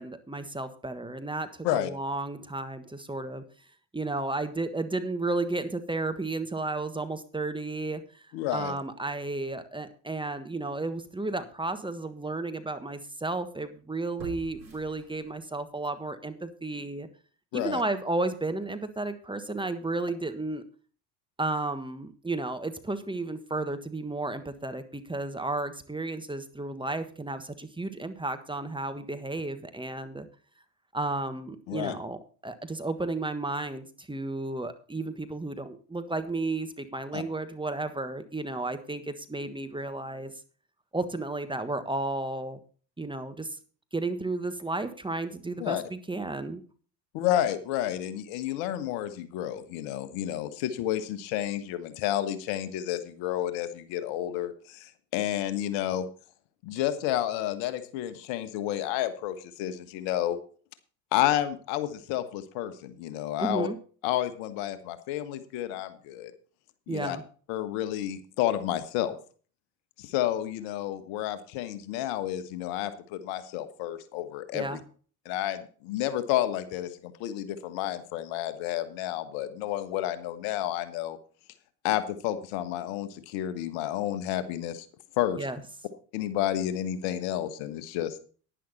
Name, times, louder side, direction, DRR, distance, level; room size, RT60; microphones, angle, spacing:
voice 1, 0.0-3.4 3.9-17.1 17.5-20.6 21.4-30.3 30.9-40.3 40.9-42.6 43.0-43.6 43.9-46.6 63.4-63.8 66.9-67.2 74.5-74.8 85.4-85.6, right 2 dB, 10° right, 9 dB, 1.4 m, -33 dB
voice 2, 8.3-8.7 17.5-17.8 31.7-31.9 37.1-37.2 45.6-45.8 47.1-56.1 56.6-60.4 61.1-63.7 64.0-66.3 66.9-67.2 67.5-69.2 70.0-74.8 75.2-81.2 81.8-84.9 85.2-85.4 86.1-88.2, left 12 dB, 65° left, 12 dB, 1.5 m, -30 dB
sound 1, 10.9-11.0 11.6-11.7 14.2-15.6 16.0-16.1, right 2 dB, 90° right, 3.9 m, -46 dB
11.0 x 10.0 x 4.1 m, 0.41 s
hypercardioid pair, 70°, 49 cm